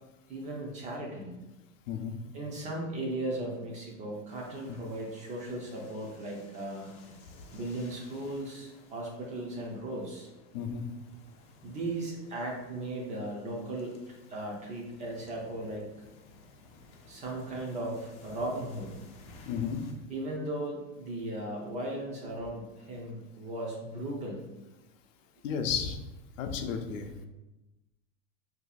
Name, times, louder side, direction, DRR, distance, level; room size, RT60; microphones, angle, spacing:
voice 1, 0.3-1.4 2.3-6.9 7.5-10.3 11.6-13.9 14.3-15.9 17.1-18.9 20.1-24.5, right 1 dB, 20° right, -1 dB, 0.4 m, -37 dB
sound 1, 4.3-19.9, left 2 dB, 40° left, 0.7 m, -56 dB
voice 2, 10.5-10.8 19.5-19.8 25.4-26.0 26.4-27.3, left 7 dB, 75° left, 6 dB, 0.6 m, -33 dB
2.7 x 2.3 x 4.0 m, 1.0 s
supercardioid pair, 135°, 38 cm